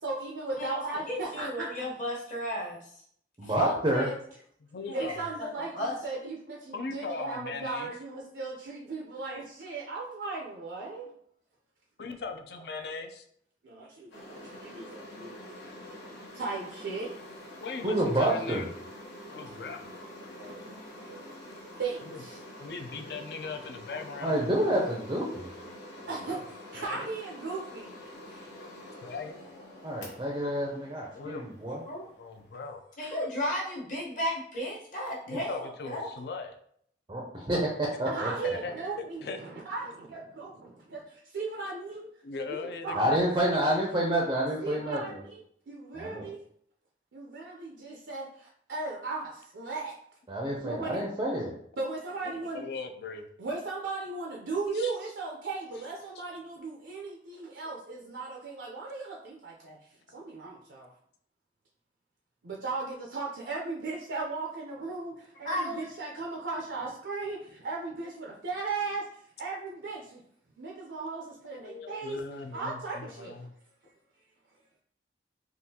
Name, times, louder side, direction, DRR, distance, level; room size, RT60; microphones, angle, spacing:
voice 1, 0.0-1.8 3.9-4.1 4.9-11.1 13.6-15.8 16.3-17.1 20.4-20.8 21.1-21.2 21.8-22.4 26.1-26.4 26.7-28.5 38.1-42.1 42.5-42.6 42.8-43.5 44.6-46.4 47.1-49.9 50.5-51.0 51.8-52.6 53.4-59.8 60.1-60.9 62.4-69.0 69.4-70.2 70.6-72.2 72.5-73.4, right 3 dB, 80° right, -2 dB, 0.5 m, -37 dB
voice 2, 0.6-2.9 3.4-3.8 4.9-5.0 5.4-5.5 5.7-6.0 31.9-32.0 33.0-36.1 65.4-65.8, equal, 45° left, -4 dB, 1.1 m, -34 dB
voice 3, 3.4-4.1 17.8-18.7 24.2-25.5 29.8-31.8 37.1-38.3 42.9-45.2 45.9-46.3 50.3-51.6, right 1 dB, 25° right, -1 dB, 0.4 m, -28 dB
voice 4, 4.6-5.3 6.7-7.9 12.0-13.3 17.6-18.7 19.3-19.9 22.0-22.2 22.6-24.6 26.0-26.4 26.7-27.1 29.0-29.4 31.1-31.5 32.0-32.8 35.3-36.5 38.4-39.4 39.8-39.9 42.2-43.8 52.3-53.3 54.7-55.0 71.5-73.5, left 4 dB, 65° left, 6 dB, 0.4 m, -39 dB
sound 1, 14.1-32.6, left 1 dB, 80° left, 0.9 m, -46 dB
3.6 x 2.4 x 2.7 m, 0.65 s
head